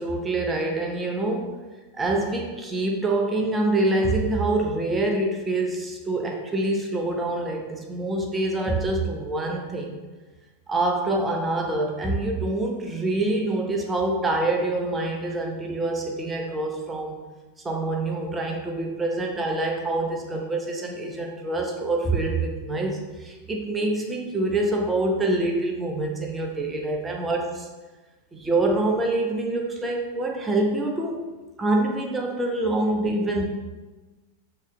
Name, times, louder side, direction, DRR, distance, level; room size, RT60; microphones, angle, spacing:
voice 1, 0.0-1.6 2.0-10.0 10.7-17.2 17.6-27.7 28.3-31.2 31.6-33.4, right 2 dB, 15° right, 1 dB, 0.6 m, -26 dB
5.7 x 2.9 x 2.2 m, 1.2 s
figure-of-eight pair, 90°, 0 cm